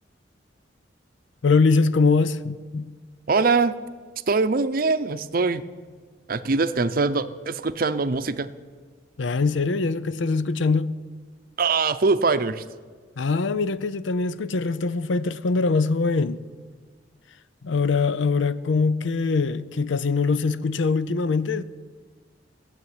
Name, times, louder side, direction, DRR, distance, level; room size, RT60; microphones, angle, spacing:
voice 1, 1.4-2.9 9.2-10.9 13.2-16.4 17.6-21.6, left 4 dB, 85° left, 0.6 m, -23 dB
voice 2, 3.3-3.7 4.3-5.6 6.3-8.5 11.6-12.6, right 4 dB, 50° right, 0.6 m, -22 dB
15.5 x 7.5 x 9.5 m
head